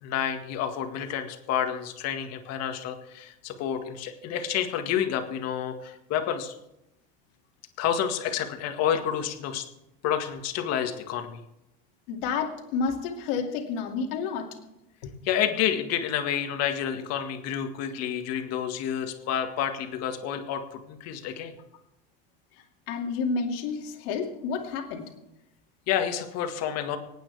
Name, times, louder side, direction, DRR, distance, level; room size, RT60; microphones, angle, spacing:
voice 1, 0.0-6.5 7.8-9.7 10.0-11.4 15.2-21.5 25.9-27.0, left 9 dB, 60° left, 6 dB, 1.8 m, -29 dB
voice 2, 12.1-14.5 15.0-15.1 22.9-25.1, left 5 dB, 75° left, 1 dB, 2.5 m, -30 dB
26.0 x 9.1 x 3.4 m, 0.88 s
supercardioid pair, 105°, 29 cm